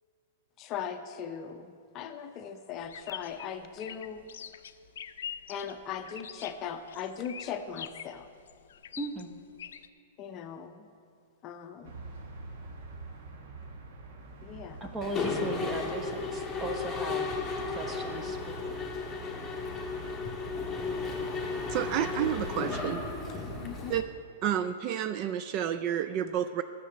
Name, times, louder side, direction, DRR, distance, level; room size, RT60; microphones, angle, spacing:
voice 1, 0.6-4.2 5.5-8.3 10.2-10.9 11.4-11.9 14.4-14.9 23.6-23.9, left 7 dB, 30° left, 7 dB, 0.6 m, -39 dB
sound 1, 2.8-9.9, left 9 dB, 80° left, 0.4 m, -44 dB
voice 2, 9.0-9.3 14.8-17.3 17.7-18.8, right 2 dB, 15° right, 6 dB, 0.9 m, -37 dB
sound 2, 11.8-23.9, right 2 dB, 60° right, 1.4 m, -45 dB
Mechanisms, 15.0-24.0, left 4 dB, 5° left, 1.5 m, -34 dB
voice 3, 21.7-23.0 23.9-24.0 24.4-26.6, right 10 dB, 40° right, 11 dB, 0.3 m, -30 dB
10.0 x 6.8 x 7.7 m, 2.3 s
hypercardioid pair, 145°, 0 cm